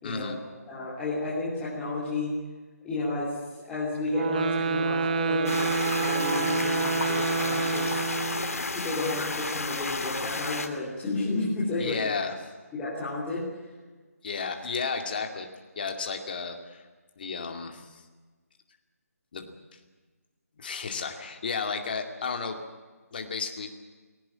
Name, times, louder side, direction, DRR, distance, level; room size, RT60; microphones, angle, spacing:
voice 1, 0.0-0.3 11.8-12.4 14.2-15.5 15.8-16.8 17.2-18.0 19.3-19.6 20.6-22.6 23.1-23.7, left 5 dB, 35° left, 5 dB, 2.4 m, -33 dB
voice 2, 0.7-2.3 2.8-8.0 8.7-12.1 12.7-13.4, left 2 dB, 10° left, -9 dB, 3.2 m, -32 dB
sound 1, 4.1-8.6, right 4 dB, 30° right, 1.5 m, -28 dB
sound 2, 5.5-10.7, left 3 dB, 65° left, 2.5 m, -32 dB
20.0 x 17.5 x 8.8 m, 1.4 s
figure-of-eight pair, 170°, 9 cm